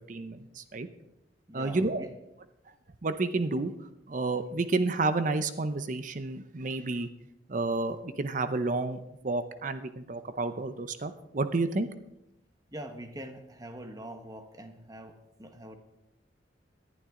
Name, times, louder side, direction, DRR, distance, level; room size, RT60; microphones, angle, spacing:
voice 1, 0.1-0.9 1.5-2.1 3.0-3.7 4.1-7.1 7.5-9.0 9.2-11.9, right 3 dB, 45° right, 10 dB, 0.7 m, -30 dB
voice 2, 1.5-2.1 12.7-15.8, right 1 dB, 20° right, 6 dB, 1.3 m, -44 dB
18.5 x 11.0 x 3.8 m, 0.87 s
head